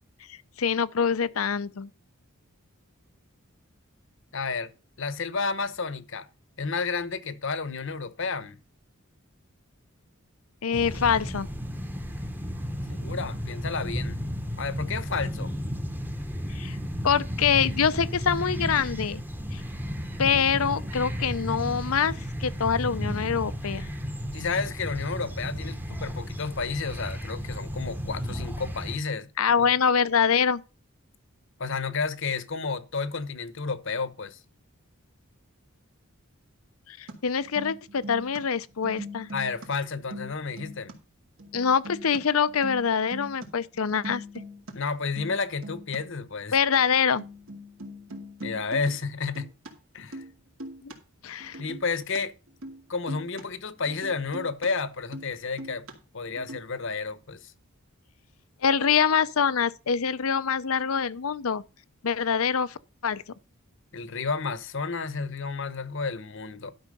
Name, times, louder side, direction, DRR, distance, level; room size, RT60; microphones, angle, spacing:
voice 1, 0.6-1.9 10.6-11.5 16.5-16.8 17.0-19.2 19.5-19.6 20.2-22.1 22.4-23.9 29.4-30.6 36.9-39.3 41.5-44.2 46.5-47.2 50.8-50.9 51.2-51.6 58.6-61.6 62.0-62.8 63.0-63.2, left 6 dB, 75° left, 0.6 m, -25 dB
voice 2, 4.3-4.7 5.0-6.3 6.6-8.6 12.9-14.2 14.6-15.5 24.3-29.3 29.6-29.7 31.6-34.4 39.3-40.9 44.7-46.6 48.4-49.5 49.9-50.2 51.6-52.3 52.9-55.9 56.1-57.5 63.9-66.7, left 4 dB, 60° left, 1.0 m, -31 dB
sound 1, 10.7-29.0, equal, 10° right, 1.0 m, -33 dB
sound 2, 37.1-37.2 37.4-38.4 38.7-39.7 40.0-40.9 41.4-42.2 42.5-43.5 43.7-44.7 45.0-45.3 45.6-46.0 46.5-46.6 46.9-47.0 47.2-49.7 50.0-50.3 50.6-51.0 51.4-52.2 52.5-52.8 53.1-53.4 53.9-54.7 55.0-55.3 55.6-55.9 56.4-56.6, equal, 70° right, 2.3 m, -41 dB
12.0 x 5.7 x 5.3 m
head